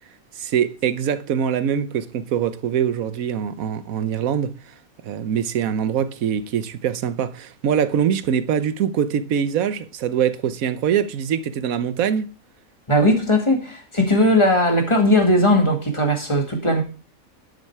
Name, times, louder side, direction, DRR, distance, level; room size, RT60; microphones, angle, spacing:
voice 1, 0.4-4.7 5.0-12.3, right 8 dB, 75° right, 1.3 m, -23 dB
voice 2, 12.9-16.8, left 1 dB, 20° left, 2.2 m, -18 dB
11.5 x 6.6 x 4.8 m
omnidirectional pair, 1.5 m